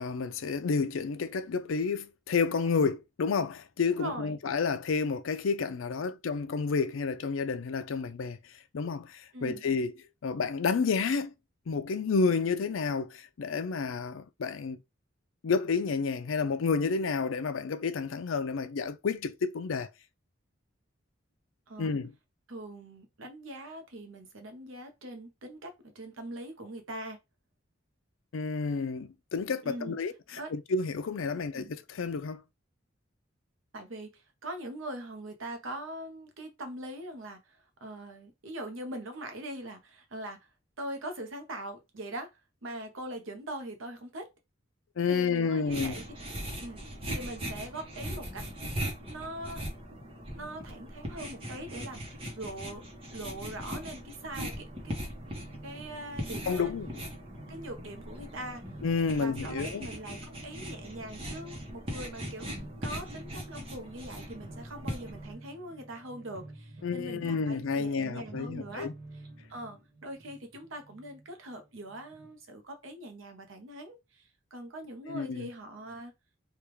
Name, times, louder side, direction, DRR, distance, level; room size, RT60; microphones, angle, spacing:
voice 1, 0.0-8.4 8.7-9.9 10.2-11.3 11.7-14.8 15.4-19.9 21.8-22.1 28.3-32.4 45.0-45.9 56.5-57.0 58.8-59.9 66.8-68.9 75.1-75.5, left 5 dB, 80° left, 0.5 m, -30 dB
voice 2, 3.9-4.4 9.3-9.6 21.7-22.0 22.5-27.2 29.6-30.0 30.3-30.5 31.3-31.7 33.7-40.4 40.8-42.3 42.6-44.3 45.0-46.0 46.6-48.4 49.0-49.6 50.3-52.8 53.1-54.9 55.6-56.7 57.5-58.6 59.2-62.5 62.8-68.9 69.5-76.1, right 1 dB, 80° right, 0.9 m, -42 dB
sound 1, 45.6-65.3, equal, 30° right, 0.9 m, -40 dB
sound 2, 53.2-72.3, right 2 dB, 55° right, 0.9 m, -50 dB
3.4 x 2.4 x 3.0 m
head